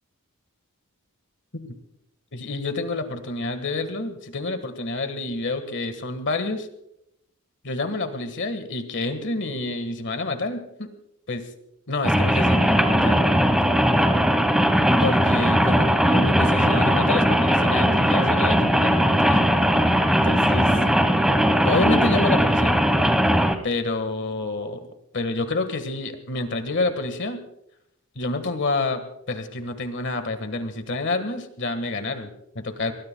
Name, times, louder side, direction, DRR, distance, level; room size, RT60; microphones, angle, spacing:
voice 1, 2.3-6.7 7.6-10.9 11.3-11.5 11.9-13.2 15.0-19.4 20.1-20.7 21.6-22.8 23.6-24.9 25.1-27.4 28.1-32.9, left 2 dB, 55° left, 8 dB, 1.6 m, -28 dB
Rain, 12.0-23.6, equal, 5° right, 1.2 m, -19 dB
23.0 x 20.5 x 2.3 m, 0.79 s
head